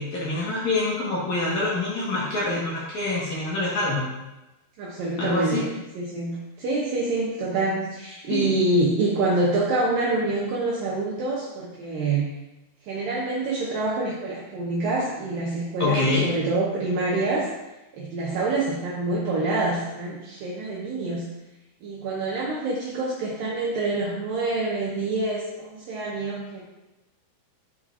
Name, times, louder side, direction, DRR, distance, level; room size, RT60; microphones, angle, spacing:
voice 1, 0.0-4.1 5.2-5.6 8.3-8.5 15.8-16.3, left 2 dB, 60° left, -7 dB, 2.2 m, -25 dB
voice 2, 4.8-5.7 6.0-12.3 12.9-17.5 17.9-21.2 21.8-26.6, right 2 dB, 70° right, -6 dB, 2.4 m, -26 dB
10.5 x 4.5 x 2.4 m, 0.99 s
omnidirectional pair, 4.6 m